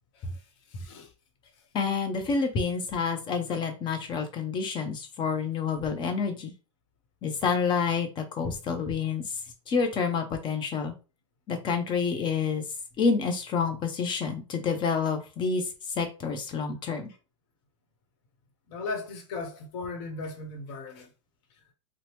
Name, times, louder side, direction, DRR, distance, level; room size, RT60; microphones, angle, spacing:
voice 1, 0.1-1.1 18.7-21.1, left 3 dB, 55° left, 1.0 m, -37 dB
voice 2, 1.7-6.5 7.2-9.2 9.7-10.9 11.5-12.6 13.0-15.6 16.0-17.1, left 5 dB, 30° left, 0.7 m, -28 dB
2.8 x 2.0 x 3.3 m
hypercardioid pair, 105°, 16 cm